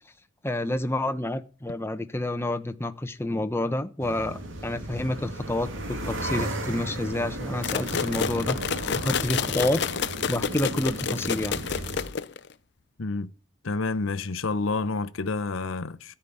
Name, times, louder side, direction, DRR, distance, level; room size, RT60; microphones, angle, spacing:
voice 1, 0.4-8.6 8.9-9.8 10.3-11.6, left 1 dB, 10° left, 0.9 m, -29 dB
sound 1, 4.0-12.1, right 1 dB, 75° right, 2.5 m, -35 dB
sound 2, 7.6-12.5, left 7 dB, 60° left, 0.6 m, -29 dB
voice 2, 13.0-13.3 13.6-16.2, left 3 dB, 85° left, 0.8 m, -29 dB
13.5 x 5.7 x 9.4 m
head